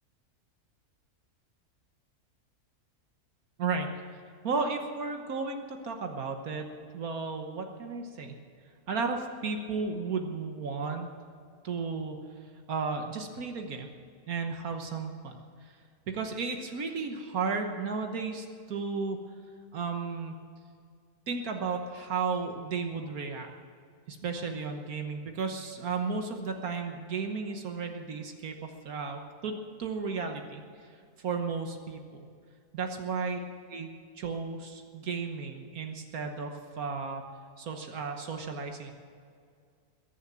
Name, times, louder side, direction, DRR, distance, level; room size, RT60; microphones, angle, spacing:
voice 1, 4.4-8.4 8.9-11.1 11.6-12.2 12.7-13.9 14.3-15.3 15.6-15.7 16.1-19.2 19.7-20.3 21.3-23.5 24.1-30.9 31.2-32.2 32.7-33.4 33.7-33.9 34.1-37.2 37.6-38.9, right 4 dB, 70° right, 4 dB, 1.6 m, -34 dB
21.5 x 7.3 x 7.4 m, 2.2 s
omnidirectional pair, 1.6 m